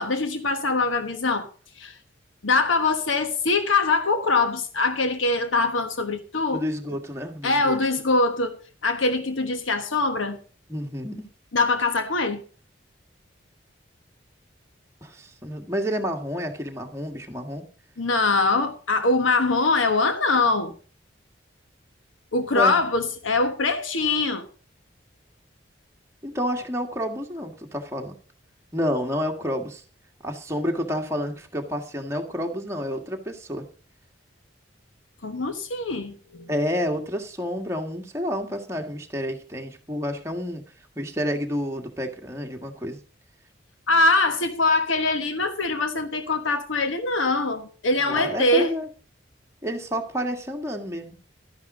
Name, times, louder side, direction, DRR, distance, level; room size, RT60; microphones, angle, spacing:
voice 1, 0.0-1.5 1.8-2.0 2.4-6.6 7.4-10.4 11.5-12.4 18.0-20.7 22.3-24.4 35.2-36.5 43.9-48.7, left 3 dB, 85° left, 1.2 m, -23 dB
voice 2, 6.5-7.8 10.7-11.2 15.0-17.6 22.5-22.8 26.2-28.1 28.7-29.8 30.2-33.6 36.5-40.6 40.9-43.0 48.0-48.9 49.6-51.1, equal, 15° right, 1.7 m, -29 dB
12.5 x 10.5 x 3.8 m
head